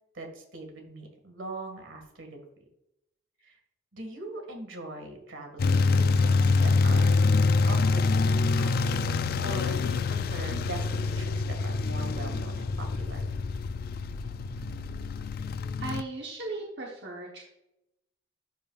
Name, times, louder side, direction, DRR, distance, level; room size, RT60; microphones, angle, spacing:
voice 1, 0.1-2.7 3.4-3.6 3.9-7.3 7.6-8.7 9.1-13.2, right 2 dB, 85° right, 3 dB, 1.8 m, -41 dB
sound 1, 5.6-16.0, left 4 dB, 50° left, 0.3 m, -26 dB
voice 2, 15.8-17.5, right 2 dB, 60° right, -1 dB, 1.0 m, -37 dB
11.0 x 5.3 x 2.4 m, 0.85 s
head